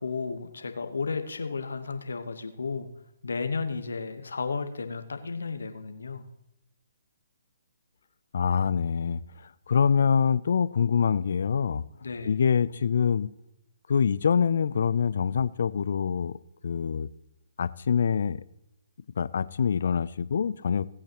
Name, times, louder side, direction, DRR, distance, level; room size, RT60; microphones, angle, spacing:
voice 1, 0.0-2.9 3.2-6.2 12.0-12.4, left 4 dB, 80° left, 1.2 m, -33 dB
voice 2, 8.3-9.2 9.7-11.8 12.3-13.3 13.9-16.4 16.6-17.1 17.6-18.4 19.2-20.9, left 7 dB, 65° left, 0.5 m, -25 dB
18.5 x 8.6 x 3.0 m
hypercardioid pair, 140°, 0 cm